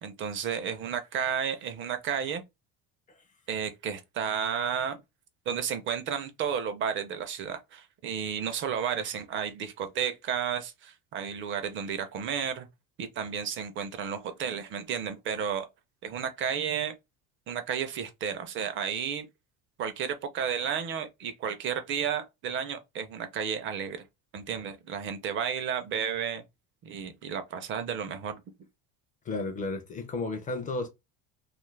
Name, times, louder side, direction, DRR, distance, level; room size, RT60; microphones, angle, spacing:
voice 1, 0.0-2.4 3.5-5.0 5.5-12.7 13.0-15.7 16.0-16.9 17.5-19.3 19.8-24.0 24.3-26.4 26.8-28.4, right 7 dB, 40° right, 0.5 m, -32 dB
voice 2, 29.3-30.9, left 3 dB, 25° left, 0.4 m, -33 dB
2.5 x 2.4 x 3.1 m
cardioid pair, 145°, 31 cm